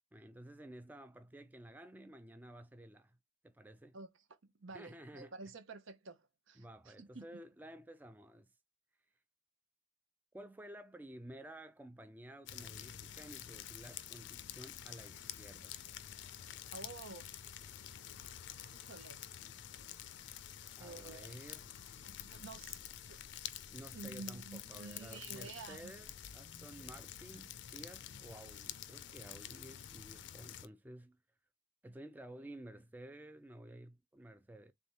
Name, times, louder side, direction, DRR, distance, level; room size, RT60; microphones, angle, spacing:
voice 1, 0.1-3.2 3.4-4.0 4.7-5.3 6.6-8.5 10.3-15.8 20.8-21.7 23.7-31.2 31.8-34.7, right 1 dB, 10° right, 0.3 m, -53 dB
voice 2, 4.4-7.4 16.7-17.3 18.7-19.2 20.8-21.4 22.0-22.8 23.1-23.2 23.9-25.9, right 3 dB, 80° right, 0.8 m, -50 dB
sound 1, 12.5-30.7, left 10 dB, 60° left, 0.5 m, -49 dB
3.5 x 3.4 x 4.1 m
head